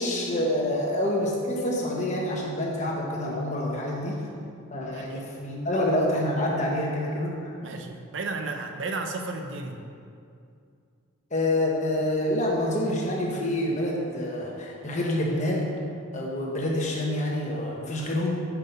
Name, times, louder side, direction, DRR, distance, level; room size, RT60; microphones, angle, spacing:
voice 1, 0.0-4.2 4.7-7.5 11.3-15.7 16.1-18.4, left 1 dB, 35° left, -2 dB, 1.0 m, -27 dB
voice 2, 4.9-5.2 7.6-9.9, right 3 dB, 60° right, 4 dB, 0.6 m, -33 dB
5.9 x 5.3 x 5.3 m, 2.4 s
head